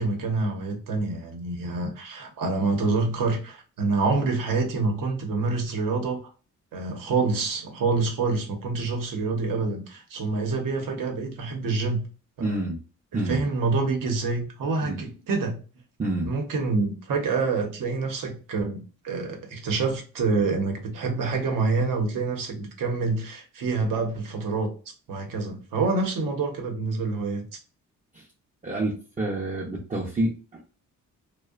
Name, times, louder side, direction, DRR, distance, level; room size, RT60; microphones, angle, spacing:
voice 1, 0.0-6.3 6.7-12.0 12.4-12.5 13.3-15.6 16.2-24.7 25.1-27.4, right 3 dB, 70° right, 0.8 m, -27 dB
voice 2, 12.4-12.8 13.1-13.4 14.8-15.0 16.0-16.3 28.1-28.2 28.6-30.6, right 1 dB, 25° right, 0.5 m, -28 dB
2.6 x 2.2 x 2.3 m
cardioid pair, 95°, 33 cm